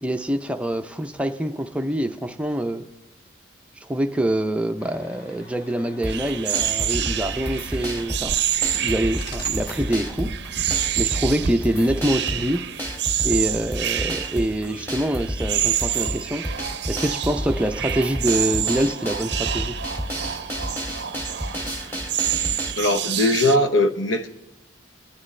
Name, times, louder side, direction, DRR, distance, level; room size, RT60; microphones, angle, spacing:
voice 1, 0.0-2.9 3.8-8.4 8.7-10.3 11.0-12.7 13.2-16.5 16.9-19.8, right 1 dB, 5° right, 0.5 m, -25 dB
sound 1, 4.8-10.0, left 2 dB, 55° left, 1.3 m, -46 dB
sound 2, 6.0-22.7, equal, 10° left, 1.6 m, -31 dB
sound 3, 6.0-23.6, right 10 dB, 60° right, 0.6 m, -28 dB
voice 2, 22.8-24.3, left 1 dB, 85° left, 0.9 m, -20 dB
29.0 x 9.9 x 3.2 m
head